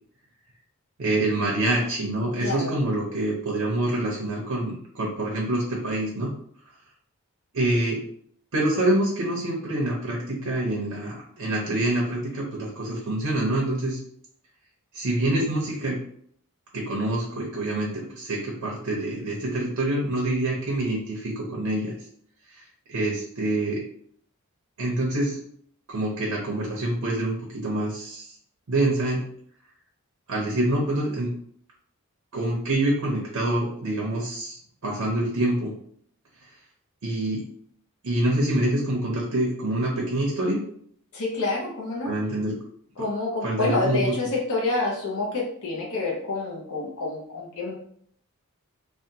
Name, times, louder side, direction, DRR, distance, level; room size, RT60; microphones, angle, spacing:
voice 1, 1.0-6.3 7.5-8.0 8.5-14.0 14.9-16.0 16.7-21.9 22.5-22.6 22.9-23.8 24.8-25.4 25.9-28.3 28.7-29.2 30.3-31.3 32.3-35.7 37.0-37.4 38.0-40.6 42.0-42.6 43.4-44.0, right 1 dB, 75° right, -2 dB, 0.7 m, -26 dB
voice 2, 2.4-2.8 41.1-42.1 43.0-47.7, left 3 dB, 65° left, -2 dB, 0.7 m, -28 dB
3.3 x 2.2 x 2.7 m, 0.65 s
head